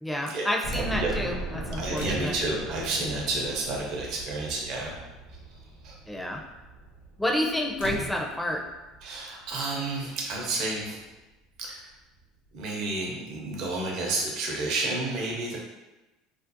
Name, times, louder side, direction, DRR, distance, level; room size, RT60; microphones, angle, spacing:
voice 1, 0.0-2.4 6.1-6.4 7.2-8.7, left 1 dB, 5° left, 0 dB, 0.5 m, -29 dB
sound 1, 0.6-9.5 10.0-10.1 10.5-10.6 11.8-11.9 12.2-12.3, right 2 dB, 45° left, 0.7 m, -39 dB
voice 2, 0.7-1.1 1.8-4.9 5.8-5.9 9.0-11.0 11.6-11.8 12.5-15.6, right 2 dB, 60° right, -1 dB, 0.7 m, -30 dB
sound 2, 1.9-2.7 3.7-3.8 4.2-4.5 4.8-5.1 7.8-8.7 10.3-10.4, equal, 85° left, 0.4 m, -38 dB
2.5 x 2.0 x 2.7 m, 1.1 s
hypercardioid pair, 85°, 0 cm